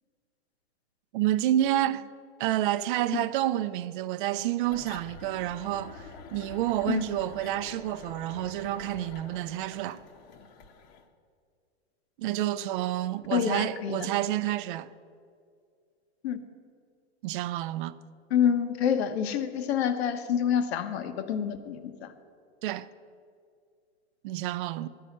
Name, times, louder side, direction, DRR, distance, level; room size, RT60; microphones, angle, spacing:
voice 1, 1.1-2.1 2.4-6.0 6.3-10.0 12.2-14.9 17.2-18.0 22.6-22.9 24.2-24.9, right 13 dB, 55° right, 0.5 m, -29 dB
sound 1, 4.6-11.1, left 5 dB, 40° left, 0.9 m, -47 dB
voice 2, 13.3-14.1 16.2-16.4 18.3-22.1, left 8 dB, 75° left, 1.0 m, -27 dB
11.5 x 5.6 x 8.6 m
supercardioid pair, 140°, 32 cm